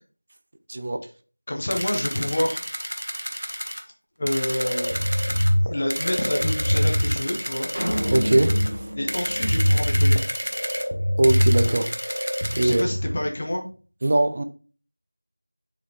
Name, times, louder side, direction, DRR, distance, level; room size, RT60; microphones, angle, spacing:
voice 1, 0.7-1.0 8.1-8.6 11.2-12.2 12.6-12.8 14.0-14.4, right 1 dB, 20° right, 0.4 m, -21 dB
voice 2, 1.5-2.6 3.3-3.6 4.2-7.7 9.0-10.2 12.6-13.6, left 1 dB, 20° left, 0.9 m, -28 dB
sound 1, 1.7-3.8 4.3-5.5 5.9-8.7 9.1-10.9 11.2-12.8, equal, 75° right, 1.3 m, -31 dB
sound 2, 4.6-13.2, equal, 70° left, 0.9 m, -24 dB
sound 3, 7.7-10.3, equal, 50° right, 1.8 m, -30 dB
7.1 x 5.1 x 2.9 m
figure-of-eight pair, 175°, 0 cm